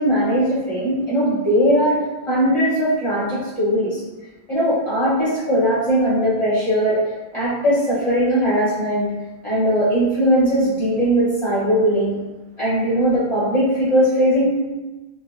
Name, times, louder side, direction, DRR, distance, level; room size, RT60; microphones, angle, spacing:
voice 1, 0.0-2.0 2.3-4.0 4.5-7.0 7.3-9.1 9.4-12.2 12.6-14.6, equal, 30° left, -9 dB, 0.9 m, -19 dB
3.1 x 2.9 x 2.4 m, 1.1 s
omnidirectional pair, 1.0 m